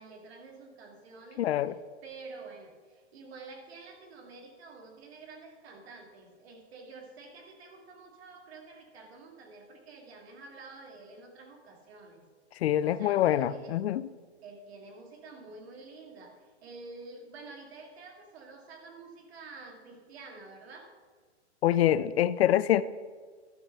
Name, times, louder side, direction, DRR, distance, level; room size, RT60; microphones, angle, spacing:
voice 1, 0.0-1.7 2.0-12.2 12.8-13.7 14.4-20.9, right 3 dB, 65° right, 2 dB, 2.4 m, -49 dB
voice 2, 1.4-1.7 12.6-14.1 21.6-22.8, left 12 dB, 65° left, 16 dB, 0.5 m, -25 dB
11.5 x 6.6 x 5.6 m, 1.5 s
hypercardioid pair, 135°, 34 cm